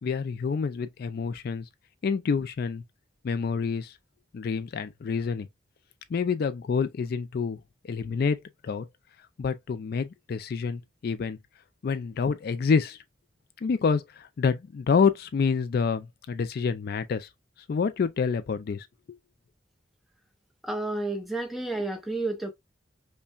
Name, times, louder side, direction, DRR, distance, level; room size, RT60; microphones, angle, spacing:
voice 1, 0.0-1.7 2.0-2.8 3.2-3.9 4.3-5.5 6.1-7.6 7.8-8.9 9.4-11.4 11.8-13.0 13.6-17.3 17.7-19.2, left 5 dB, 60° left, 0.4 m, -27 dB
voice 2, 20.6-22.5, right 2 dB, ahead, 0.7 m, -31 dB
5.3 x 2.2 x 2.3 m
head